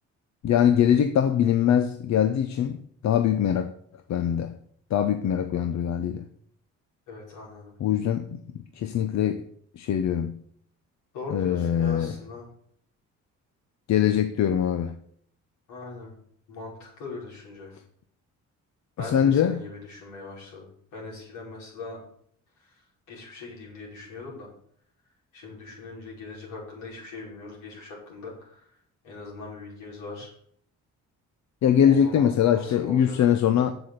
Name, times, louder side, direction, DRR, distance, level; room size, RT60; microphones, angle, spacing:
voice 1, 0.4-2.8 3.0-3.7 4.1-4.5 4.9-6.2 7.8-8.3 8.8-9.4 9.8-10.3 11.3-12.1 13.9-14.9 19.0-19.6 31.6-33.7, left 9 dB, 65° left, 0.8 m, -22 dB
voice 2, 7.1-7.7 11.1-12.5 15.7-16.1 16.5-17.8 19.0-22.0 22.6-22.8 23.1-24.5 25.3-28.7 29.0-30.3 31.8-33.4, left 3 dB, 90° left, 5.3 m, -40 dB
8.0 x 7.1 x 7.9 m
cardioid pair, 90°, 30 cm